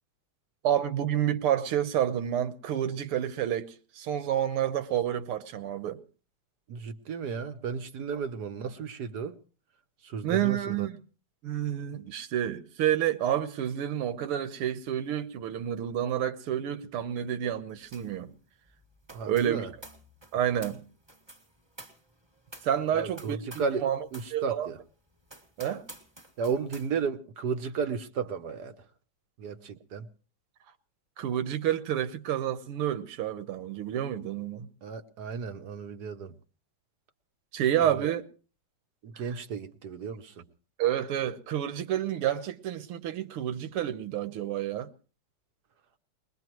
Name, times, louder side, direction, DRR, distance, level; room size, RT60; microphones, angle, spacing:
voice 1, 0.6-6.0 10.2-11.0 11.4-18.3 19.3-19.7 20.3-20.8 22.6-24.0 24.3-24.7 25.6-25.8 31.2-34.7 37.5-38.2 39.1-39.4 40.8-44.9, right 10 dB, 90° right, 2.0 m, -29 dB
voice 2, 6.7-9.4 10.0-10.9 19.1-19.7 22.9-23.9 24.1-24.8 26.4-28.7 29.4-30.1 34.8-36.3 37.8-38.1 39.0-40.5, right 5 dB, 55° right, 1.3 m, -34 dB
sound 1, 17.9-18.2 18.4-23.8 24.1-24.4 24.8-24.9 25.3-26.9, right 1 dB, 15° right, 1.7 m, -50 dB
22.0 x 21.0 x 3.1 m
omnidirectional pair, 2.4 m